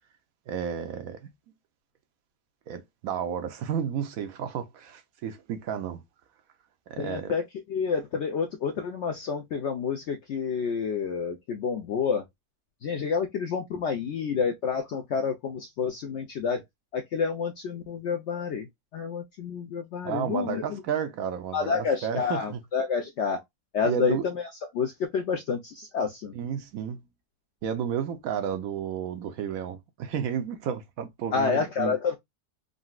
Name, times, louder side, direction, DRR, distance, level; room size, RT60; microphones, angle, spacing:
voice 1, 0.5-1.3 2.7-6.0 6.9-7.3 20.0-22.6 23.8-24.2 26.3-27.0 27.6-31.9, right 8 dB, 70° right, 0.9 m, -32 dB
voice 2, 7.0-12.2 12.8-16.6 16.9-18.7 18.9-20.8 21.5-23.4 23.7-24.5 24.7-26.3 31.3-32.2, left 6 dB, 70° left, 0.6 m, -29 dB
3.8 x 2.1 x 2.2 m
omnidirectional pair, 1.6 m